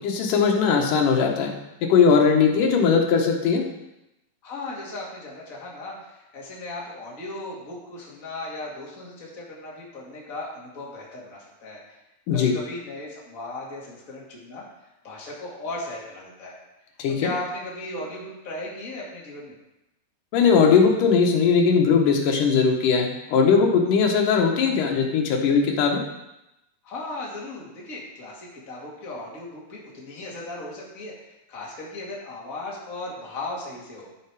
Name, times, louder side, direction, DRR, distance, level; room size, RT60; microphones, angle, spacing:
voice 1, 0.0-1.5 1.9-3.6 12.3-12.5 17.0-17.3 20.3-26.0, left 5 dB, 75° left, 1 dB, 2.8 m, -19 dB
voice 2, 4.4-11.8 12.3-14.6 15.0-16.6 17.1-19.5 26.8-34.1, left 2 dB, 25° left, -4 dB, 2.3 m, -36 dB
13.0 x 5.9 x 4.9 m, 0.93 s
omnidirectional pair, 3.9 m